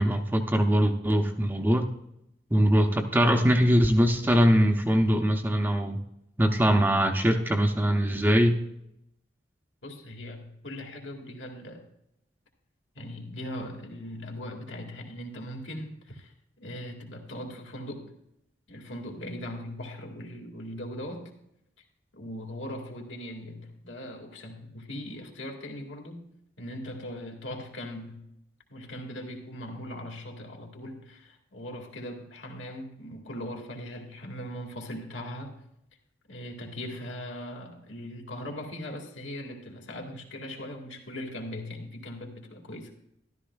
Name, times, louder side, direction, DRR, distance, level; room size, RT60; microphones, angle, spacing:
voice 1, 0.0-1.9 2.5-6.0 6.4-8.6, equal, 10° right, 4 dB, 0.6 m, -22 dB
voice 2, 9.8-11.9 13.0-18.1 18.7-21.3 22.1-26.3 26.6-28.3 28.7-35.6 36.3-42.9, left 1 dB, 80° left, 1 dB, 2.0 m, -39 dB
13.5 x 12.0 x 2.3 m, 0.79 s
head